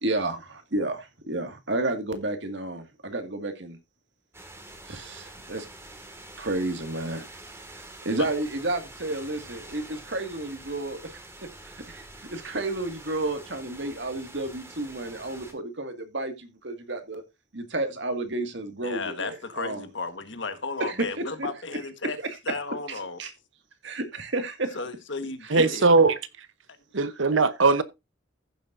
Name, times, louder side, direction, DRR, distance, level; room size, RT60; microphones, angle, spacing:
voice 1, 0.0-3.8 4.9-5.7 6.4-7.3 8.0-11.2 11.6-17.2 17.5-19.9 20.8-21.5 22.5-22.6 22.9-23.3 23.8-24.8 27.0-27.1, right 2 dB, 65° right, 2.1 m, -31 dB
sound 1, 4.3-15.5, right 2 dB, 15° right, 2.0 m, -46 dB
voice 2, 18.8-22.2 22.4-23.2 24.7-25.9, left 3 dB, 70° left, 1.5 m, -34 dB
voice 3, 25.5-26.2 26.9-27.8, right 3 dB, 80° right, 1.0 m, -20 dB
15.0 x 7.3 x 2.6 m
head